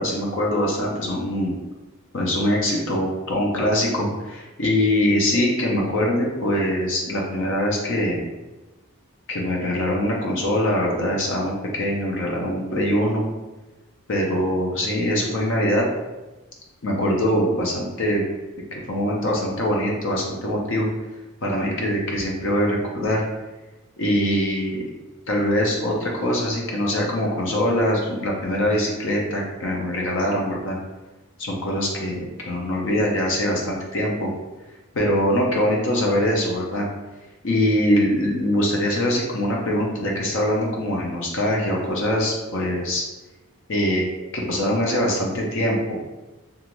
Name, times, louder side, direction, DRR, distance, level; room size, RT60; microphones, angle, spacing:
voice 1, 0.0-1.5 2.1-8.2 9.3-13.2 14.1-15.8 16.8-18.2 18.7-20.9 21.4-23.2 24.0-24.8 25.3-30.8 31.4-34.3 34.9-36.9 37.4-43.0 43.7-44.1 44.3-46.0, left 1 dB, 60° left, -1 dB, 0.6 m, -23 dB
2.4 x 2.4 x 2.9 m, 1.1 s
head